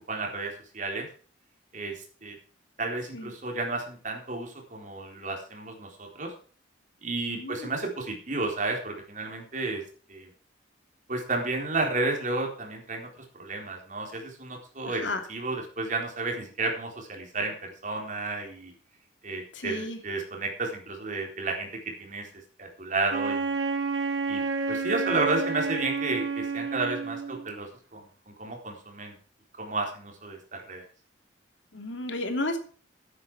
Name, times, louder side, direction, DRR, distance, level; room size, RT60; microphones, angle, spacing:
voice 1, 0.1-1.1 1.7-2.4 2.8-6.3 7.0-9.8 10.1-10.3 11.1-13.1 13.3-15.0 15.3-18.7 19.2-21.7 22.0-22.3 22.6-23.6 24.3-24.4 24.7-29.1 29.6-30.9, right 3 dB, 40° right, 1 dB, 4.0 m, -32 dB
voice 2, 7.3-7.7 14.8-15.2 19.5-20.0 31.7-32.6, left 2 dB, 75° left, 5 dB, 2.9 m, -32 dB
Wind instrument woodwind instrument, 23.1-27.5, right 4 dB, 75° right, 2.1 m, -30 dB
14.0 x 9.9 x 4.8 m, 0.42 s
head